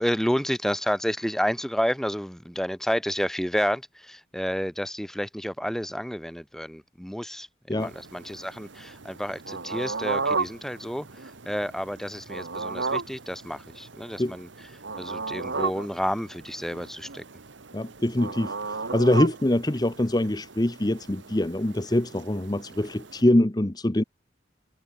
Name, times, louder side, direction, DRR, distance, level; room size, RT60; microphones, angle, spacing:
voice 1, 0.0-14.5 15.0-17.2, equal, ahead, 1.5 m, -30 dB
sound 1, 7.8-23.2, right 4 dB, 85° right, 1.5 m, -35 dB
voice 2, 17.7-24.0, left 1 dB, 20° left, 0.8 m, -24 dB
head